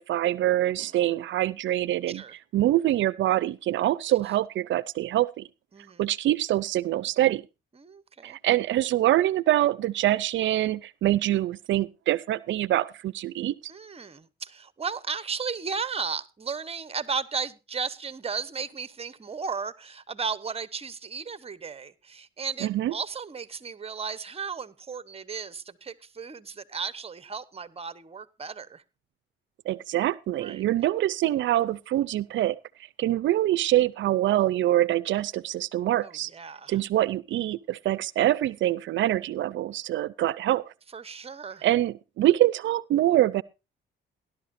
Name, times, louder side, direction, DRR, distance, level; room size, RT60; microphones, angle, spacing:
voice 1, 0.0-2.2 2.5-5.5 6.0-7.4 8.2-13.5 22.6-22.9 29.7-32.6 33.0-36.3 36.7-40.6 41.6-43.4, right 14 dB, 70° right, 0.5 m, -25 dB
voice 2, 5.7-6.1 7.8-8.4 13.7-28.8 30.4-30.7 36.0-36.8 40.9-41.7, right 5 dB, 30° right, 1.0 m, -35 dB
18.0 x 11.5 x 2.6 m
cardioid pair, 90°, 20 cm